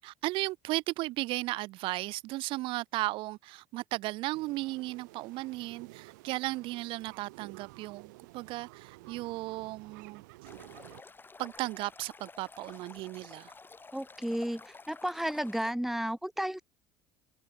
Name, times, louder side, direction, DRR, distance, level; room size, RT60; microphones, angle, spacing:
voice 1, 0.0-10.2 11.4-13.5, right 19 dB, 65° right, 0.4 m, -35 dB
sound 1, 4.3-11.0, right 23 dB, 85° right, 7.9 m, -52 dB
Stream, 10.5-15.7, left 4 dB, 20° left, 3.7 m, -51 dB
voice 2, 13.9-16.6, equal, 5° right, 1.9 m, -33 dB
supercardioid pair, 80°, 10 cm